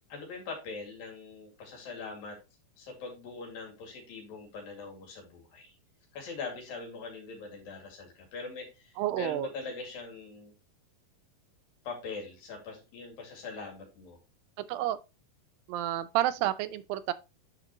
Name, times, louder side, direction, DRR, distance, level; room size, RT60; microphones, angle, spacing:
voice 1, 0.1-2.4 2.8-5.7 6.1-10.5 11.9-14.2, left 4 dB, 80° left, 4.0 m, -42 dB
voice 2, 9.0-9.5 14.7-15.0 15.7-17.1, right 13 dB, 85° right, 2.3 m, -30 dB
9.7 x 5.1 x 3.0 m
omnidirectional pair, 4.0 m